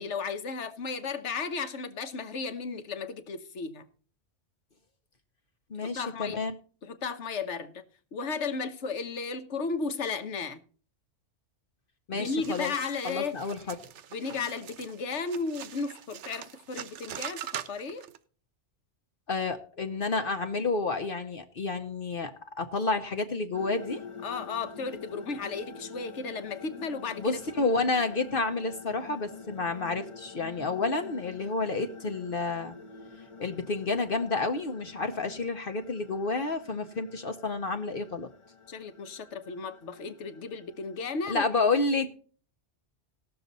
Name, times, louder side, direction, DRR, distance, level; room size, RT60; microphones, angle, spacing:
voice 1, 0.0-3.8 5.8-6.4 6.8-7.8 8.1-10.6 12.1-13.4 14.1-18.0 24.2-27.4 38.7-41.5, left 4 dB, 75° left, 1.3 m, -34 dB
voice 2, 5.7-6.5 12.1-12.7 13.0-13.7 19.3-22.3 22.6-24.0 27.2-32.7 33.4-38.3 41.3-42.1, left 3 dB, 50° left, 1.0 m, -30 dB
sound 1, 12.2-18.2, right 10 dB, 75° right, 1.0 m, -43 dB
sound 2, 23.5-41.6, left 4 dB, 30° left, 0.9 m, -47 dB
18.0 x 6.9 x 4.0 m
omnidirectional pair, 1.2 m